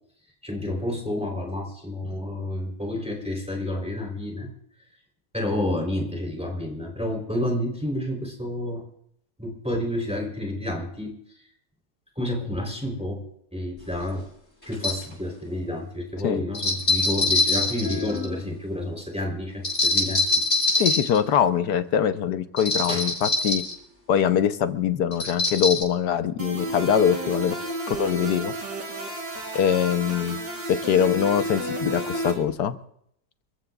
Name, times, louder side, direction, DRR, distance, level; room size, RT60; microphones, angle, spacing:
voice 1, 0.4-4.5 5.3-8.8 9.4-11.1 12.2-13.2 13.5-14.3 14.7-20.2 22.9-23.1, left 1 dB, 5° right, 1 dB, 3.5 m, -30 dB
sound 1, 13.8-13.9 14.7-15.0 16.5-18.4 19.6-21.2 22.6-23.7 25.1-25.8, left 2 dB, 35° left, 7.6 m, -24 dB
voice 2, 20.8-23.6 24.1-27.6 27.9-28.5 29.5-30.4 30.7-32.8, left 8 dB, 70° left, 10 dB, 1.4 m, -23 dB
sound 2, 26.4-32.3, right 1 dB, 90° right, 4.6 m, -31 dB
29.5 x 14.5 x 2.4 m, 0.70 s
omnidirectional pair, 1.9 m